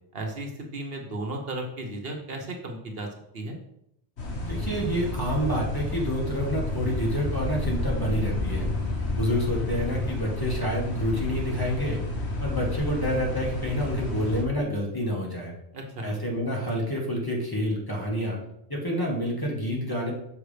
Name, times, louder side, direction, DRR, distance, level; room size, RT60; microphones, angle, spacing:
voice 1, 0.1-3.1 3.3-3.6 15.7-16.2, right 2 dB, 65° right, 3 dB, 1.3 m, -34 dB
sound 1, 4.2-14.4, left 2 dB, 75° left, 1.6 m, -30 dB
voice 2, 4.4-8.7 9.1-12.0 12.4-15.5 16.0-18.4 18.7-20.1, equal, 20° left, -3 dB, 1.7 m, -28 dB
6.4 x 5.5 x 5.0 m, 0.78 s
omnidirectional pair, 1.1 m